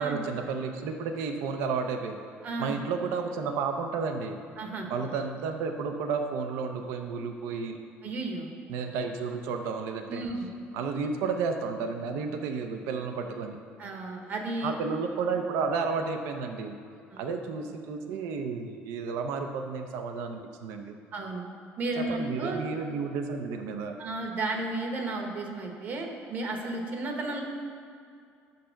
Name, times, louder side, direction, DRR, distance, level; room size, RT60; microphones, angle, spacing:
voice 1, 0.0-2.2 2.6-4.4 4.9-7.8 8.7-10.2 10.7-13.6 14.6-16.7 17.2-20.9 22.0-24.0, right 5 dB, 90° right, 6 dB, 0.6 m, -32 dB
voice 2, 2.4-2.8 4.6-4.9 8.0-8.5 10.1-10.5 13.8-14.7 17.1-17.3 21.1-21.4 21.8-22.6 24.0-27.4, right 2 dB, 40° right, 2 dB, 1.0 m, -33 dB
6.7 x 6.4 x 5.7 m, 2.4 s
cardioid pair, 155°, 5 cm